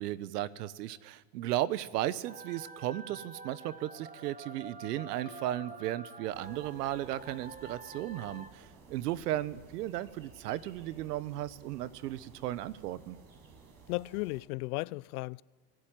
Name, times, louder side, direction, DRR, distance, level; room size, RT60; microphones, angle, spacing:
voice 1, 0.0-13.2, right 14 dB, 80° right, 1.3 m, -35 dB
sound 1, 2.2-8.5, right 3 dB, 15° right, 1.8 m, -48 dB
sound 2, 5.2-8.8, left 7 dB, 45° left, 3.0 m, -59 dB
sound 3, 6.3-14.4, right 4 dB, 45° right, 6.4 m, -56 dB
voice 2, 13.9-15.4, left 23 dB, 70° left, 0.6 m, -35 dB
26.0 x 17.5 x 9.1 m
supercardioid pair, 110°, 47 cm